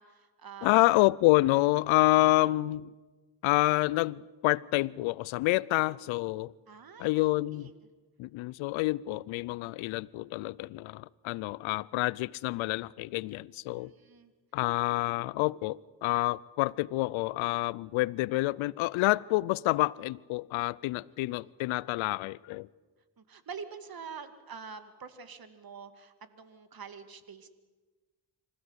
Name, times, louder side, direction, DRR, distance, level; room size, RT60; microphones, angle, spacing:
voice 1, 0.0-0.8 6.7-7.7 13.6-14.3 21.2-21.4 23.2-27.5, right 6 dB, 50° right, 2.4 m, -46 dB
voice 2, 0.6-2.9 3.4-6.5 7.0-7.7 8.2-13.9 14.5-22.7, left 19 dB, 85° left, 0.6 m, -28 dB
26.0 x 15.5 x 8.1 m
supercardioid pair, 60°, 46 cm